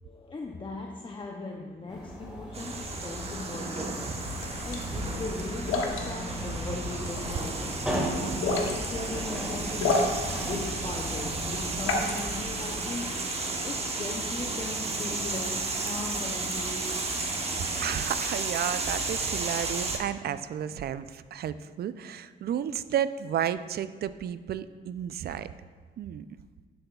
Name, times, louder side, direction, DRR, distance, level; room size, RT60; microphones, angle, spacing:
voice 1, 0.0-13.1 13.6-17.0, left 3 dB, 25° left, 1 dB, 0.6 m, -39 dB
sound 1, 1.9-18.2, right 1 dB, 5° right, 1.8 m, -38 dB
sound 2, 2.5-20.0, right 3 dB, 30° right, 1.0 m, -33 dB
sound 3, 4.2-12.7, left 3 dB, 85° left, 1.1 m, -33 dB
voice 2, 17.8-25.5 26.0-26.3, right 9 dB, 55° right, 13 dB, 0.4 m, -32 dB
11.0 x 7.8 x 2.3 m, 1.5 s
cardioid pair, 90°, 20 cm